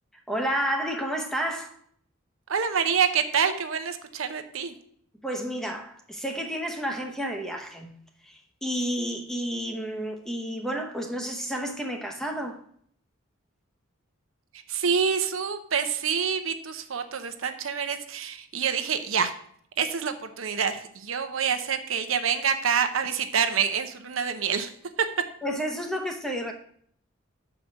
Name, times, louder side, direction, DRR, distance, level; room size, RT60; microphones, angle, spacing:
voice 1, 0.3-1.7 5.2-8.0 8.2-12.6 25.4-26.5, equal, ahead, 3 dB, 0.8 m, -31 dB
voice 2, 2.5-4.7 14.5-19.3 19.8-24.7 25.0-25.1, right 7 dB, 75° right, 8 dB, 0.8 m, -27 dB
6.4 x 4.9 x 6.3 m, 0.62 s
head